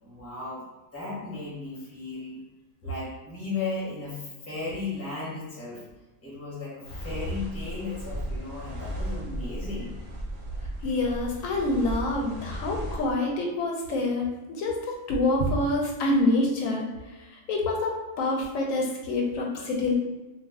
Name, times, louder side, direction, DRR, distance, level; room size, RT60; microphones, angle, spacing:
voice 1, 0.0-0.6 0.9-2.4 2.8-5.8 6.2-9.9, left 3 dB, 15° left, -6 dB, 0.7 m, -35 dB
sound 1, 6.8-13.1, equal, 50° right, 0.7 m, -35 dB
voice 2, 10.8-16.9 17.1-19.9, left 2 dB, 75° left, -1 dB, 0.9 m, -27 dB
2.4 x 2.3 x 3.4 m, 1.1 s
omnidirectional pair, 1.4 m